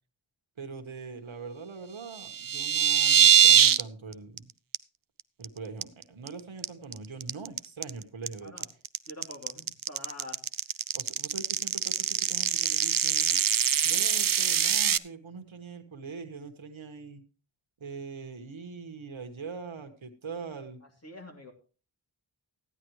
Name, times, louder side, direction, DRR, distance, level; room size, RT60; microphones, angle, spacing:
voice 1, 0.6-4.5 5.4-8.5 10.9-13.4 13.8-17.2 17.8-20.8, right 4 dB, 90° right, 6 dB, 1.5 m, -42 dB
sound 1, 2.1-3.8 4.1-4.4 4.7-4.8 5.2-5.4 5.8-6.3 6.6-15.0, right 8 dB, 50° right, 0.5 m, -23 dB
voice 2, 9.1-10.4 21.0-21.5, left 1 dB, 35° left, 1 dB, 2.9 m, -45 dB
15.0 x 10.0 x 3.2 m, 0.37 s
wide cardioid pair, 75°, 46 cm